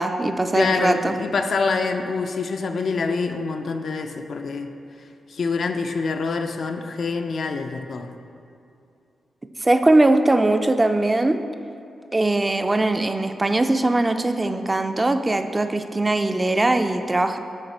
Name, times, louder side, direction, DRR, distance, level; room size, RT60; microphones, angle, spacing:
voice 1, 0.0-1.1 9.6-11.4 12.1-17.4, right 2 dB, 25° right, 7 dB, 0.3 m, -20 dB
voice 2, 0.5-4.7 5.3-8.1, left 4 dB, 65° left, 6 dB, 0.4 m, -26 dB
6.5 x 4.0 x 4.4 m, 2.6 s
cardioid pair, 75°, 0 cm